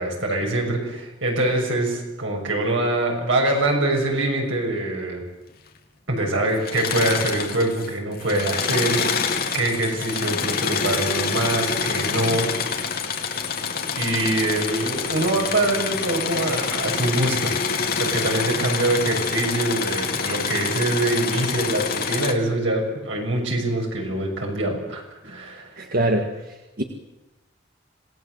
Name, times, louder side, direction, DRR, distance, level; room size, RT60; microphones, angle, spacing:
voice 1, 0.0-5.2 6.1-12.7 13.9-17.5 18.0-25.7, right 2 dB, 80° right, 1 dB, 6.8 m, -24 dB
Engine / Mechanisms, 6.6-7.9 8.2-22.3, left 5 dB, 50° left, 2.3 m, -26 dB
voice 2, 25.8-26.8, right 1 dB, 50° right, 3 dB, 1.8 m, -24 dB
26.5 x 18.5 x 8.0 m, 1.0 s
head